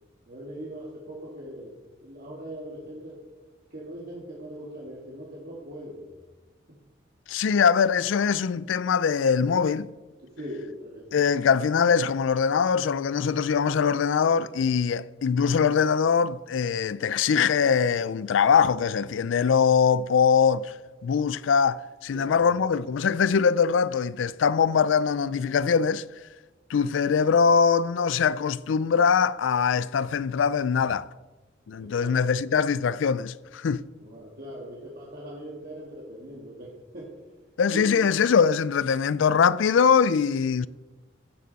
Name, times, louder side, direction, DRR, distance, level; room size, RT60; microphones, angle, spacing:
voice 1, 0.3-1.8 2.0-3.2 3.7-6.0 6.7-6.8 10.4-11.2 22.1-22.5 31.8-32.6 34.0-37.1 37.7-38.0, equal, 50° right, 2.0 m, -40 dB
voice 2, 7.3-9.9 11.1-20.7 21.0-26.0 26.7-31.1 31.7-33.8 37.6-40.7, left 6 dB, 80° left, 0.4 m, -22 dB
15.5 x 6.7 x 4.1 m
head